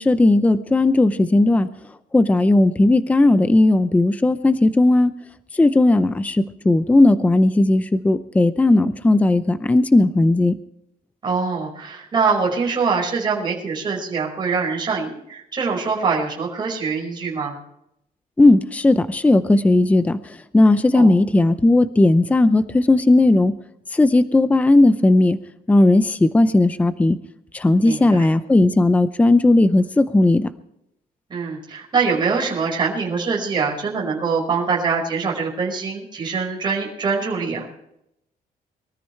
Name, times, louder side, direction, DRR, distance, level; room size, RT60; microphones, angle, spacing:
voice 1, 0.0-1.7 2.1-5.1 5.6-10.5 18.4-20.2 20.5-23.5 23.9-25.4 25.7-27.2 27.5-30.5, left 2 dB, 10° left, 12 dB, 0.6 m, -16 dB
voice 2, 11.2-17.6 20.9-21.1 27.8-28.3 31.3-37.7, right 5 dB, 30° right, -2 dB, 5.1 m, -23 dB
24.0 x 13.5 x 3.3 m, 0.79 s
cardioid pair, 165°, 16 cm